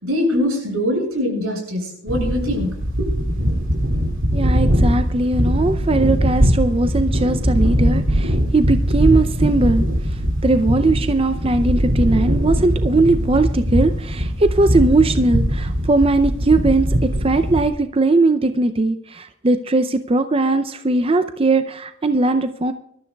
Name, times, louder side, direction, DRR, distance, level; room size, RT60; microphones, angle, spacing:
voice 1, 0.0-3.1, left 1 dB, 90° right, 0 dB, 7.2 m, -23 dB
sound 1, 2.1-17.7, equal, 65° right, 2.4 m, -20 dB
voice 2, 4.3-22.7, right 2 dB, 25° right, 9 dB, 0.5 m, -19 dB
24.5 x 13.0 x 2.3 m, 0.73 s
head